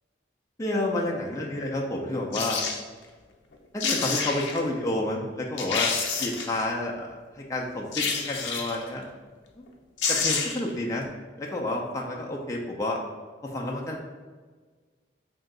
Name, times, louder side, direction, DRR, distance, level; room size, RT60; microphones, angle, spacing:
voice 1, 0.6-2.6 3.7-5.9 6.2-9.0 9.6-9.7 10.1-11.1 11.4-13.0 13.4-14.0, left 1 dB, 15° left, -2 dB, 0.3 m, -30 dB
sound 1, 2.3-2.8 3.5-3.6 3.8-4.6 5.1-5.2 5.6-6.6 7.9-8.8 9.7-9.8 10.0-10.7 11.0-11.1, left 5 dB, 70° left, 0.5 m, -28 dB
3.0 x 2.7 x 3.7 m, 1.5 s
head